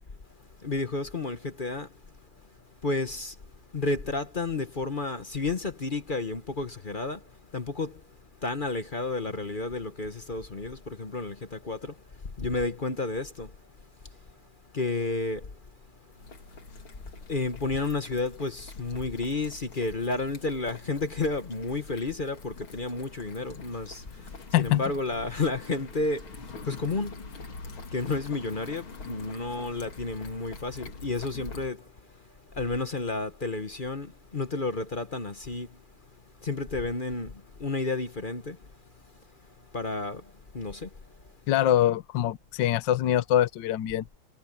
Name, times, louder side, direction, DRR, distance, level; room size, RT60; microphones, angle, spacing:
voice 1, 0.6-1.9 2.8-3.3 3.7-7.2 7.5-8.0 8.4-11.9 12.4-13.5 14.7-15.5 17.3-24.0 24.6-26.3 26.6-27.3 27.9-31.8 32.6-35.7 36.4-37.3 37.6-38.6 39.7-40.2 40.5-40.9, left 3 dB, 35° left, 0.9 m, -31 dB
sound 1, 16.1-31.7, left 3 dB, 85° left, 3.6 m, -45 dB
voice 2, 41.5-44.0, left 12 dB, 65° left, 1.4 m, -24 dB
omnidirectional pair, 2.2 m